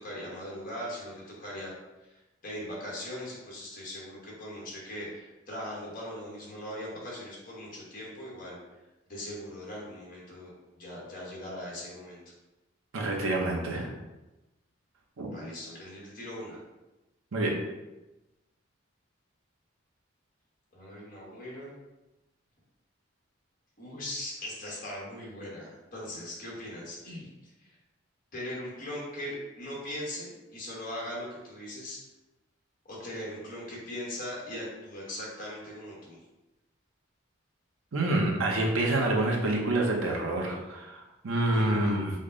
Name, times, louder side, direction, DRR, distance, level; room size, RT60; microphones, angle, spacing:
voice 1, 0.0-1.7 2.0-8.6 9.1-12.2 15.3-16.6 20.7-21.7 23.8-27.8 28.3-32.0 32.8-36.2 41.5-42.0, left 1 dB, 40° left, -4 dB, 1.3 m, -40 dB
voice 2, 12.9-13.9 15.2-15.3 17.3-17.5 37.9-42.1, right 2 dB, 80° right, 0 dB, 0.8 m, -27 dB
5.1 x 2.2 x 3.8 m, 1.0 s
head